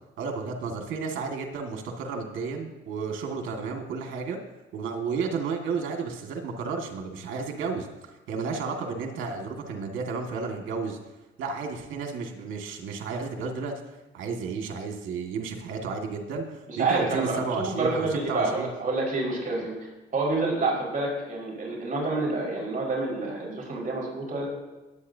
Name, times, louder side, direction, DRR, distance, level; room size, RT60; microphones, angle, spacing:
voice 1, 0.2-4.4 4.7-7.9 8.3-11.0 11.4-13.7 14.1-18.7, right 4 dB, 80° right, 2 dB, 2.0 m, -32 dB
voice 2, 16.7-24.5, right 3 dB, 45° right, -3 dB, 4.8 m, -28 dB
20.5 x 8.9 x 2.8 m, 1.1 s
cardioid pair, 90°, 20 cm